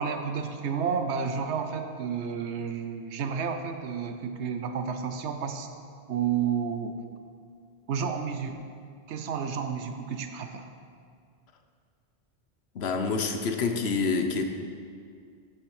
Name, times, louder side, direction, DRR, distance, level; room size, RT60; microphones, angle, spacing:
voice 1, 0.0-5.7 6.1-7.0 7.9-8.8 9.1-10.6, right 6 dB, 85° right, 7 dB, 1.0 m, -31 dB
voice 2, 12.7-14.4, left 4 dB, 70° left, 5 dB, 1.1 m, -27 dB
14.5 x 6.2 x 4.8 m, 2.2 s
omnidirectional pair, 1.1 m